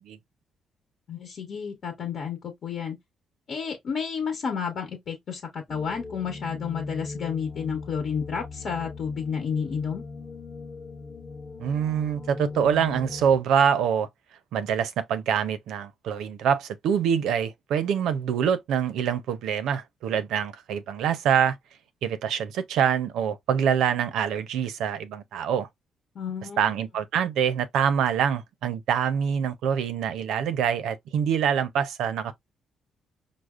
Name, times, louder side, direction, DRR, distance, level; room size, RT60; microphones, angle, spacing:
voice 1, 1.1-3.0 3.5-10.0 26.1-26.7, left 6 dB, 60° left, 1.1 m, -31 dB
sound 1, 5.7-13.4, left 3 dB, 25° left, 1.0 m, -39 dB
voice 2, 11.6-14.1 14.5-21.5 22.0-25.7 26.6-32.3, right 8 dB, 80° right, 0.5 m, -25 dB
4.9 x 2.0 x 2.4 m
cardioid pair, 90°, 0 cm